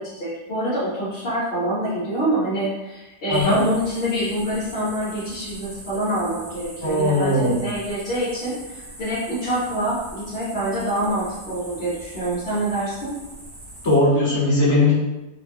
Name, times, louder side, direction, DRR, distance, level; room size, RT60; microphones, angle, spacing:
voice 1, 0.0-13.1, right 1 dB, 50° left, -10 dB, 0.7 m, -26 dB
voice 2, 3.3-3.6 6.8-7.6 13.8-15.0, left 2 dB, 30° left, -10 dB, 1.3 m, -19 dB
sound 1, 3.3-13.9, right 1 dB, 40° right, 0.5 m, -41 dB
3.0 x 2.2 x 2.6 m, 1.1 s
omnidirectional pair, 1.8 m